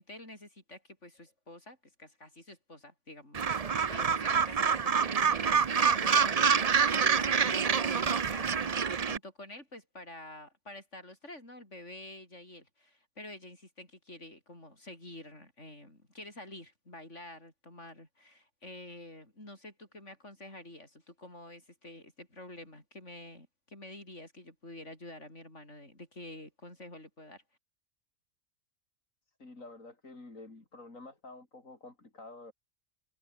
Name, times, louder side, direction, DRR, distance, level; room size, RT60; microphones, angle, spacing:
voice 1, 0.0-27.4, left 1 dB, 60° left, 8.5 m, -49 dB
Gull seagull, 3.3-9.2, right 6 dB, 35° right, 0.7 m, -27 dB
voice 2, 29.4-32.5, left 2 dB, 80° left, 5.0 m, -49 dB
omnidirectional pair, 1.4 m